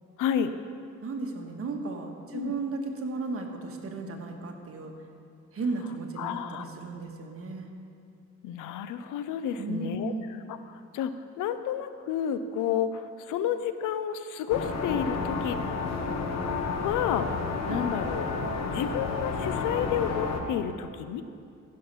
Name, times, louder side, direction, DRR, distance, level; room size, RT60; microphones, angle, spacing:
voice 1, 0.2-0.5 2.3-2.5 6.2-6.7 8.4-10.1 10.5-15.6 16.4-16.5 16.8-17.3 17.6-18.3 18.6-21.2, left 9 dB, 90° left, 11 dB, 0.7 m, -31 dB
voice 2, 1.0-4.9 5.5-7.7 9.6-10.3 17.7-17.8, right 3 dB, 50° right, 2 dB, 1.5 m, -35 dB
sound 1, 14.5-20.4, left 4 dB, 60° left, 1.3 m, -31 dB
15.0 x 6.6 x 5.6 m, 2.5 s
cardioid pair, 90°, 30 cm